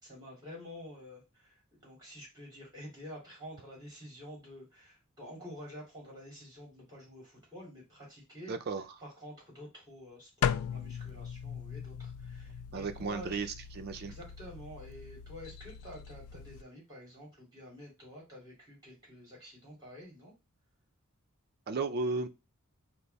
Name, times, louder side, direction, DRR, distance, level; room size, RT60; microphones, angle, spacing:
voice 1, 0.0-8.6 9.0-13.5 14.0-20.3, equal, 20° right, 2.5 m, -49 dB
voice 2, 8.5-8.8 12.7-13.5 13.8-14.1 21.7-22.3, right 4 dB, 45° right, 0.4 m, -34 dB
sound 1, 10.4-16.6, left 8 dB, 75° left, 0.3 m, -38 dB
4.5 x 2.0 x 3.9 m
head